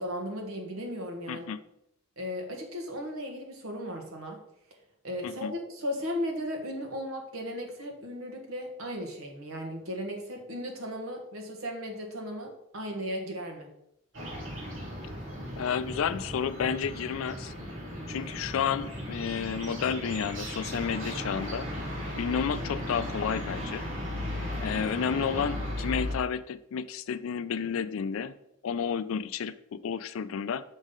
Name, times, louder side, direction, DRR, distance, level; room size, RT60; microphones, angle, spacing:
voice 1, 0.0-1.5 2.2-4.4 5.0-13.7, equal, 85° right, 2 dB, 1.4 m, -36 dB
voice 2, 1.3-1.6 5.2-5.5 15.6-17.5 18.1-21.7 22.2-23.9 24.6-28.3 28.6-30.6, left 7 dB, 75° left, 15 dB, 0.4 m, -31 dB
sound 1, 14.1-26.2, left 1 dB, 65° right, 2.2 m, -36 dB
6.2 x 5.4 x 3.7 m, 0.80 s
head